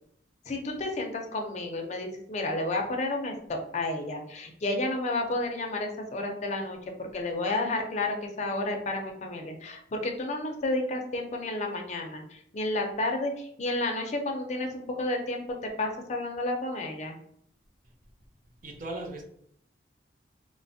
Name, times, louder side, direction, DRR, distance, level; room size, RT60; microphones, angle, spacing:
voice 1, 0.5-17.2, left 2 dB, 40° left, 2 dB, 0.5 m, -31 dB
voice 2, 18.6-19.2, right 2 dB, 50° right, 3 dB, 0.5 m, -37 dB
3.2 x 2.0 x 2.6 m, 0.68 s
head